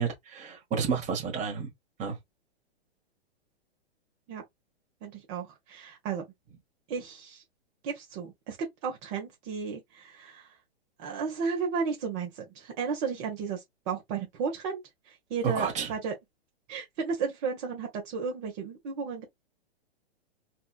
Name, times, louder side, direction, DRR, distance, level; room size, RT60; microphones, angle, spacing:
voice 1, 0.0-1.7 2.0-2.2 15.4-15.9, right 6 dB, 20° right, 1.4 m, -30 dB
voice 2, 5.0-6.2 6.9-7.4 7.8-8.6 8.8-10.6 11.0-16.1 16.7-19.2, right 5 dB, 40° right, 1.3 m, -34 dB
4.2 x 2.5 x 2.4 m
hypercardioid pair, 120°, 32 cm